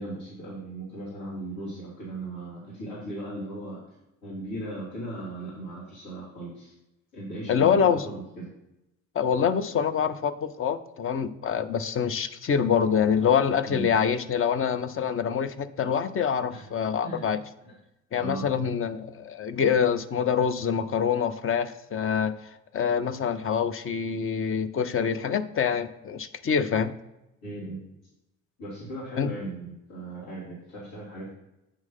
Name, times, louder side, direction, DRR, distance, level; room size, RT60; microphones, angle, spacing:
voice 1, 0.0-3.8 4.2-6.7 7.1-8.5 13.6-13.9 16.5-16.7 17.0-17.3 17.6-17.7 18.2-18.5 27.4-27.8 28.6-31.3, right 1 dB, 70° left, -8 dB, 2.8 m, -37 dB
voice 2, 7.5-8.1 9.1-17.4 18.1-22.4 22.7-26.9 29.2-29.3, left 7 dB, 30° left, 11 dB, 0.7 m, -25 dB
8.4 x 3.2 x 5.5 m, 0.91 s
figure-of-eight pair, 50°, 40 cm